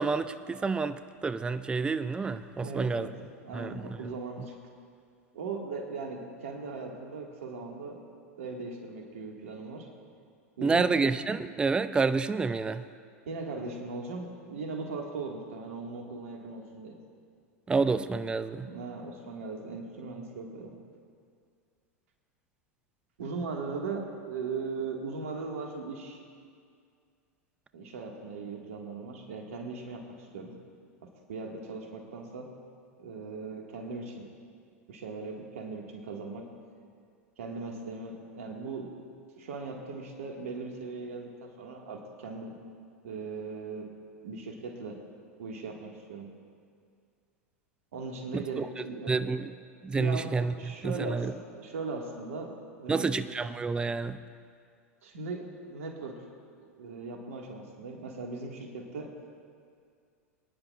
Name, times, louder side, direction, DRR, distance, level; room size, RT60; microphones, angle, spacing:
voice 1, 0.0-3.1 3.5-4.0 10.6-12.8 17.7-18.7 48.3-48.7 49.1-49.5 49.8-51.3 52.9-54.2, right 4 dB, 10° right, 12 dB, 0.4 m, -29 dB
voice 2, 2.6-4.6 5.3-8.0 8.4-9.9 10.6-10.9 13.3-17.0 18.6-20.8 23.2-26.2 27.7-30.1 30.3-30.6 31.0-32.6 33.0-34.3 34.9-36.5 37.4-42.6 43.0-43.9 44.2-45.0 45.4-46.3 47.9-49.3 49.9-53.2 55.0-56.2 56.6-59.2, right 4 dB, 65° right, 1 dB, 1.9 m, -39 dB
24.5 x 10.0 x 2.5 m, 2.2 s
figure-of-eight pair, 90°, 8 cm